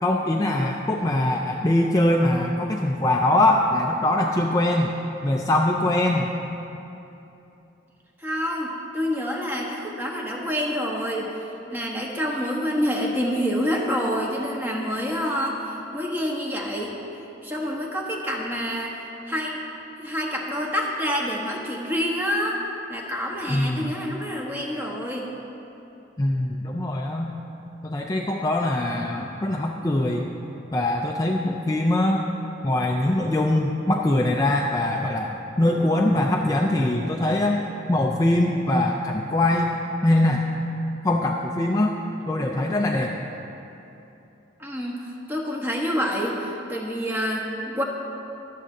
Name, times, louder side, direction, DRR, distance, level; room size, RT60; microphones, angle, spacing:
voice 1, 0.0-4.9 5.2-6.3 23.5-23.9 26.2-27.3 27.8-30.3 30.7-32.2 32.6-39.7 40.0-40.4 41.0-42.0 42.3-43.2, left 1 dB, 20° left, 0 dB, 0.4 m, -22 dB
voice 2, 8.2-11.3 11.7-16.9 17.4-19.0 19.3-19.6 20.0-22.6 22.9-25.3 44.6-45.0 45.3-47.8, equal, 10° right, -2 dB, 1.0 m, -27 dB
22.0 x 7.5 x 2.7 m, 3.0 s
head